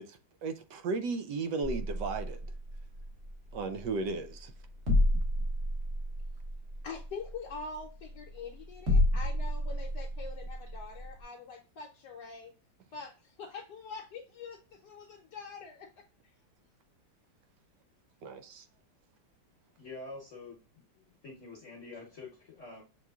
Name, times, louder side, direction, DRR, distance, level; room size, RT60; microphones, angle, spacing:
voice 1, 0.0-2.4 3.5-4.5 18.2-18.6, right 4 dB, 75° right, 1.2 m, -35 dB
sound 1, 1.6-11.2, left 1 dB, 40° right, 1.5 m, -31 dB
voice 2, 6.8-12.5 12.9-15.9, left 4 dB, 70° left, 1.2 m, -44 dB
voice 3, 19.8-22.8, left 3 dB, 50° left, 1.1 m, -47 dB
7.0 x 3.1 x 2.3 m
omnidirectional pair, 2.0 m